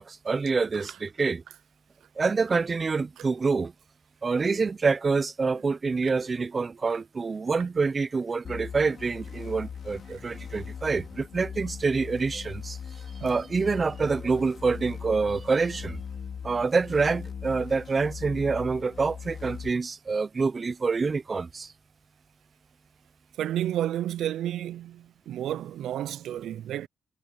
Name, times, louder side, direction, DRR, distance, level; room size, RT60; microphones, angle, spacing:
voice 1, 0.0-1.4 2.2-3.7 4.2-12.8 13.2-16.0 16.4-21.7, right 4 dB, 30° right, 0.6 m, -26 dB
sound 1, 8.4-19.7, left 7 dB, 55° left, 4.5 m, -40 dB
voice 2, 23.4-26.9, right 12 dB, 75° right, 0.4 m, -31 dB
cardioid pair, 90°, 0 cm